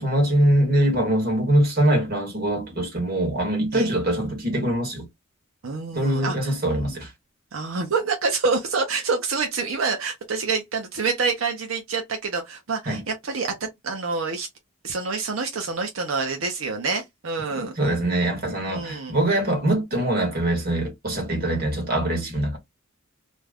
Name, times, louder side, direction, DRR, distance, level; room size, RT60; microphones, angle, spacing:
voice 1, 0.0-5.0 5.9-7.1 12.9-13.0 17.8-22.6, right 1 dB, 50° right, 1.2 m, -23 dB
voice 2, 5.6-7.0 7.5-14.5 14.8-17.7 18.7-19.2, right 4 dB, 80° right, 0.7 m, -27 dB
2.5 x 2.2 x 3.3 m
head